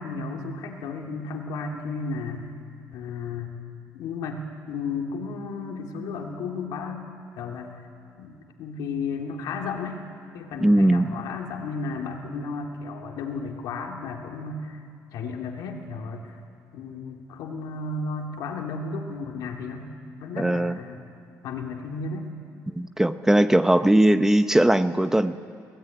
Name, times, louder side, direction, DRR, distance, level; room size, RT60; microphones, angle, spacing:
voice 1, 0.0-2.5 2.9-3.5 3.9-7.1 7.4-7.8 8.2-10.0 10.3-14.8 15.1-16.4 16.7-19.9 20.2-21.0 21.4-22.3, left 4 dB, 90° left, 2 dB, 2.6 m, -33 dB
voice 2, 10.6-11.2 20.4-20.8 22.8-25.4, right 1 dB, 5° right, 10 dB, 0.7 m, -19 dB
27.0 x 17.5 x 9.2 m, 2.4 s
cardioid pair, 110°, 6 cm